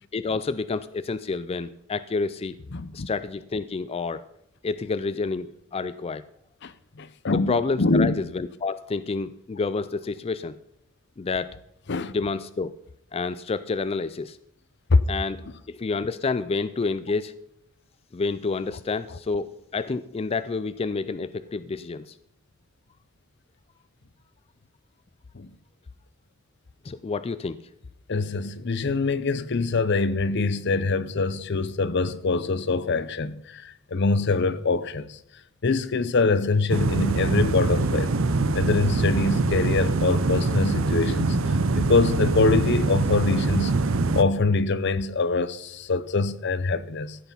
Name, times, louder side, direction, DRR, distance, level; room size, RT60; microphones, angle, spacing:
voice 1, 0.1-2.6 2.9-4.2 4.6-6.2 7.5-10.6 11.2-11.5 12.1-12.7 13.1-14.4 15.1-15.4 15.7-17.3 18.1-22.1 26.8-27.6, left 4 dB, 30° left, 0.4 m, -29 dB
voice 2, 2.7-3.1 6.6-6.7 7.0-8.1 11.9-12.1 14.9-15.0 25.4-25.5 28.1-33.6 33.9-35.1 35.6-38.1 38.5-41.4 41.8-43.8 44.1-47.2, left 3 dB, 55° left, 0.7 m, -24 dB
sound 1, 36.7-44.2, right 3 dB, 75° right, 0.7 m, -24 dB
14.5 x 8.2 x 5.5 m
head